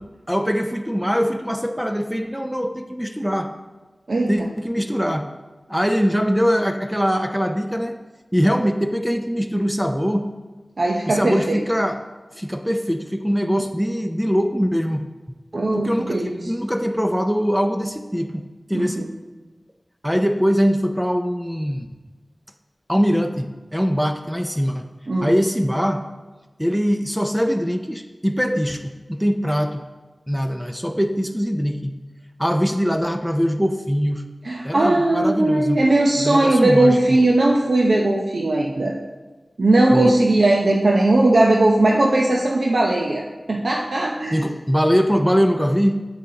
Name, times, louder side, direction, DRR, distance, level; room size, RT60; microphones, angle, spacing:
voice 1, 0.3-3.5 4.3-5.3 5.7-7.9 8.3-10.3 11.1-12.0 12.3-15.0 15.7-18.4 18.7-19.0 20.0-21.9 22.9-24.9 25.2-26.0 26.6-29.8 30.3-32.0 32.4-34.2 34.6-35.8 36.2-37.2 39.9-40.1 44.3-46.0, equal, 5° right, 5 dB, 0.5 m, -22 dB
voice 2, 4.1-4.5 10.8-11.6 15.5-16.4 18.7-19.1 25.1-25.3 34.4-39.0 39.6-44.4, right 2 dB, 75° right, -1 dB, 0.7 m, -18 dB
10.0 x 8.1 x 2.8 m, 1.2 s
wide cardioid pair, 75°, 0 cm